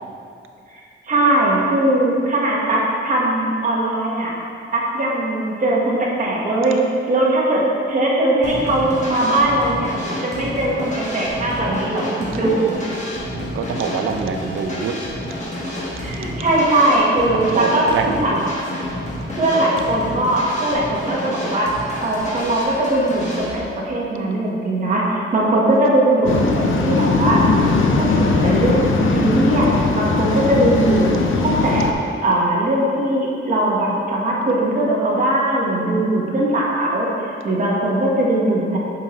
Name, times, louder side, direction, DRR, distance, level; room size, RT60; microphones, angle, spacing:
voice 1, 1.0-4.3 4.7-6.8 7.1-7.6 7.9-9.9 10.2-12.7 16.0-17.8 18.2-18.4 19.4-21.7 22.0-27.4 27.9-31.1 31.4-31.9 32.2-38.8, right 1 dB, 40° right, -4 dB, 1.4 m, -20 dB
sound 1, 8.4-23.6, left 1 dB, 35° left, 1.4 m, -29 dB
voice 2, 13.3-15.0 17.3-18.5, right 6 dB, 80° right, 5 dB, 0.6 m, -25 dB
Waves surf, 26.3-31.9, left 3 dB, 70° left, 0.7 m, -19 dB
8.9 x 6.4 x 3.1 m, 2.5 s
wide cardioid pair, 175°, 21 cm